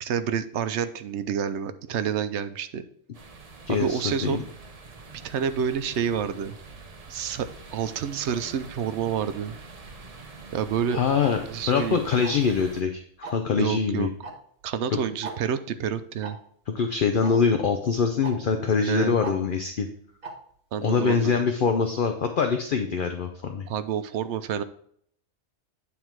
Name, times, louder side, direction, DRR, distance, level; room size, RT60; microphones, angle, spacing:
voice 1, 0.0-2.8 3.7-4.4 5.2-6.5 7.1-9.6 10.5-11.0 11.5-12.0 13.6-14.1 14.6-16.4 18.9-19.2 20.7-21.4 23.7-24.6, right 8 dB, 75° right, 11 dB, 0.9 m, -28 dB
sound 1, 3.1-12.8, right 4 dB, 35° right, 0.8 m, -45 dB
voice 2, 3.7-4.4 10.9-11.4 11.7-14.1 14.9-15.0 16.7-19.9 20.8-23.7, left 5 dB, 55° left, 6 dB, 0.7 m, -24 dB
Tick-tock, 11.2-11.3 12.2-12.5 13.2-13.5 14.2-14.3 14.6-14.7 15.2-15.4 16.2-16.3 17.2-17.3 18.2-18.3 19.2-19.3 20.2-20.3, right 3 dB, 50° right, 1.3 m, -36 dB
9.5 x 3.6 x 4.5 m, 0.64 s
omnidirectional pair, 1.2 m